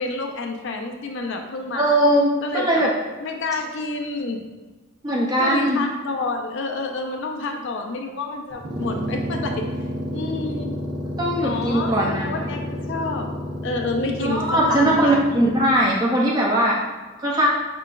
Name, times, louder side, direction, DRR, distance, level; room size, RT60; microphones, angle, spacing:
voice 1, 0.0-2.0 2.4-2.8 3.2-4.4 5.4-9.7 10.1-10.7 11.4-13.3 13.6-15.2, left 3 dB, 60° left, 3 dB, 0.4 m, -29 dB
voice 2, 1.7-2.9 5.0-5.8 11.2-12.5 14.2-16.8 17.2-17.5, right 1 dB, 20° right, -4 dB, 0.5 m, -20 dB
sound 1, 8.5-15.9, equal, 65° right, 0.9 m, -30 dB
5.5 x 3.8 x 2.4 m, 1.2 s
head